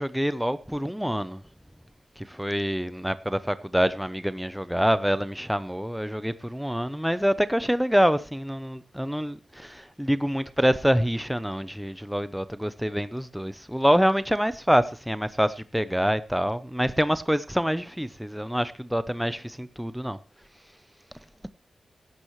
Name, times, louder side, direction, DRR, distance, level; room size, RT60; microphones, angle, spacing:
voice 1, 0.0-1.4 2.2-20.2, equal, ahead, 0.6 m, -26 dB
16.5 x 12.0 x 3.1 m
wide cardioid pair, 140°, 0 cm